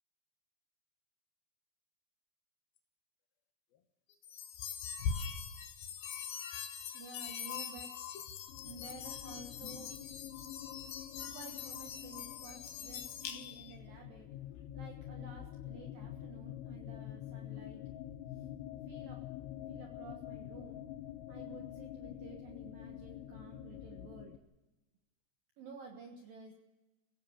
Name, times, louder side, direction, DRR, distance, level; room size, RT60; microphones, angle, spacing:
sound 1, 4.2-13.8, left 7 dB, 65° left, 2.6 m, -42 dB
voice 1, 6.9-7.9 8.6-9.9 11.3-14.3 14.7-17.8 18.3-18.5 18.9-19.2 19.7-20.8 21.3-24.4 25.6-26.5, right 4 dB, 60° right, 2 dB, 2.6 m, -52 dB
sound 2, 8.5-24.4, left 12 dB, 85° left, 3.5 m, -47 dB
26.0 x 17.0 x 7.3 m, 1.1 s
omnidirectional pair, 5.8 m